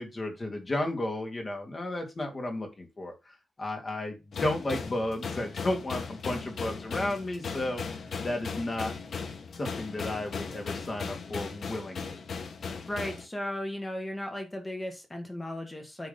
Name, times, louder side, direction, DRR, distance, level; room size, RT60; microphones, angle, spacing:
voice 1, 0.0-7.8 8.2-9.0 9.6-12.2, left 1 dB, 30° left, 3 dB, 2.3 m, -33 dB
sound 1, 4.3-13.2, left 5 dB, 65° left, 1.4 m, -37 dB
voice 2, 12.9-16.1, left 1 dB, 15° left, 4 dB, 1.6 m, -36 dB
9.5 x 3.8 x 5.2 m, 0.26 s
wide cardioid pair, 130°, 0 cm